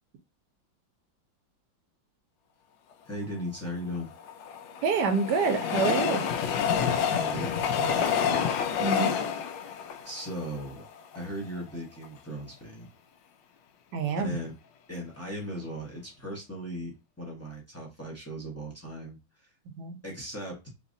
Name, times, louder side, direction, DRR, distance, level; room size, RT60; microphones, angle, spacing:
voice 1, 3.0-4.1 7.1-8.3 10.0-10.8 11.1-12.9 14.2-14.5 14.9-19.5 20.0-20.6, equal, 20° left, 0.3 m, -38 dB
Train, 4.0-11.2 11.7-11.8 12.0-12.1, left 7 dB, 75° left, 1.2 m, -28 dB
voice 2, 4.8-6.2 8.8-9.2 13.9-14.4 19.8-20.0, right 5 dB, 70° right, 1.1 m, -27 dB
3.4 x 3.1 x 2.6 m
omnidirectional pair, 2.1 m